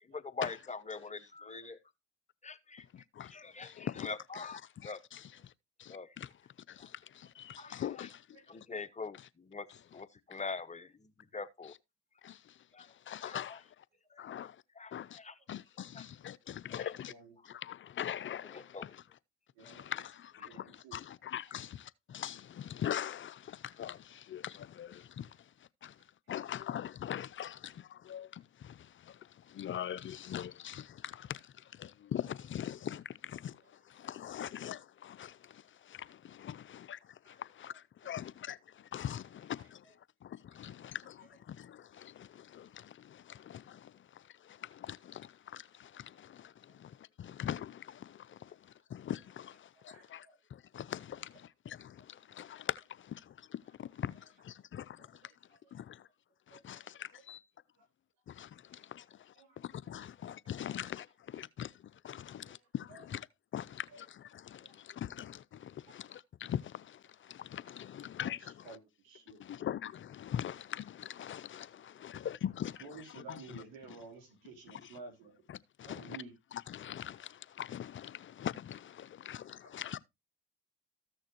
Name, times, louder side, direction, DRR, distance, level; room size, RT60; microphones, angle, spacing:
voice 1, 0.1-1.8 2.4-2.8 3.3-5.0 5.9-6.1 7.6-7.8 8.5-9.7 9.9-11.7 12.7-12.9 13.2-13.6 14.1-14.2 14.8-15.3 15.9-16.0 16.7-16.9 18.5-18.8 19.6-19.7, left 4 dB, 25° left, 1.0 m, -43 dB
voice 2, 0.9-1.8 4.3-4.5 7.6-7.8 8.3-8.4 11.3-11.4 16.7-17.4 19.5-19.9 20.5-21.0 37.2-37.4 37.7-37.8 39.6-39.9 40.6-40.8 46.7-46.8 49.7-50.4 55.5-55.6 56.5-57.0 57.8-57.9 59.3-59.7 60.7-60.8 62.2-62.3 62.9-63.0 63.9-64.0 64.6-64.8 65.8-65.9 68.2-68.8 69.0-69.4 72.0-72.1 72.8-75.4 75.8-76.3 79.6-79.7, right 4 dB, 85° right, 3.4 m, -53 dB
voice 3, 2.9-4.1 4.3-5.5 5.8-6.3 6.7-8.3 9.2-9.3 9.7-9.8 12.2-13.8 14.2-14.6 14.9-15.2 15.5-17.1 17.5-19.0 19.6-25.5 25.8-26.0 26.3-39.9 40.2-55.2 55.7-56.1 56.5-57.4 58.3-63.3 63.5-68.8 69.4-73.6 74.7-74.9 75.5-76.2 76.5-80.0, left 10 dB, 40° left, 0.5 m, -43 dB
14.0 x 6.5 x 2.9 m
supercardioid pair, 65°, 30 cm